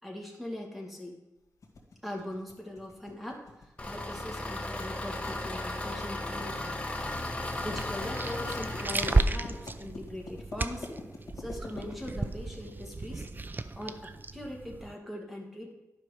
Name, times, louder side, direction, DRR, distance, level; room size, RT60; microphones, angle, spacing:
voice 1, 0.0-1.2 2.0-6.8 7.6-11.0 11.4-13.3 13.8-15.7, left 1 dB, ahead, 0 dB, 2.0 m, -41 dB
sound 1, 1.6-13.2, left 3 dB, 65° left, 2.1 m, -47 dB
Engine, 3.8-9.2, left 2 dB, 20° left, 1.1 m, -35 dB
sound 2, 7.6-14.9, right 3 dB, 30° right, 0.4 m, -33 dB
10.5 x 5.6 x 5.0 m, 0.99 s
wide cardioid pair, 80°, 6 cm